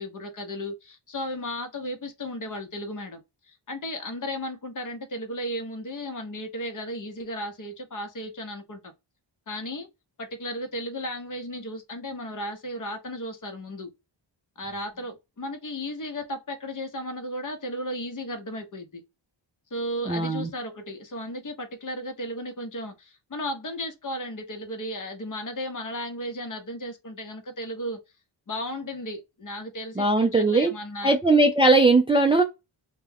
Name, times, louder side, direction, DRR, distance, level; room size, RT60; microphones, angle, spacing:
voice 1, 0.0-8.9 9.5-9.9 10.2-13.9 14.6-19.0 19.7-28.0 28.5-31.1, equal, 40° left, 0.8 m, -35 dB
voice 2, 20.1-20.5 30.0-30.7 31.0-32.4, right 2 dB, 15° right, 0.3 m, -19 dB
2.2 x 2.2 x 3.4 m
wide cardioid pair, 90°, 47 cm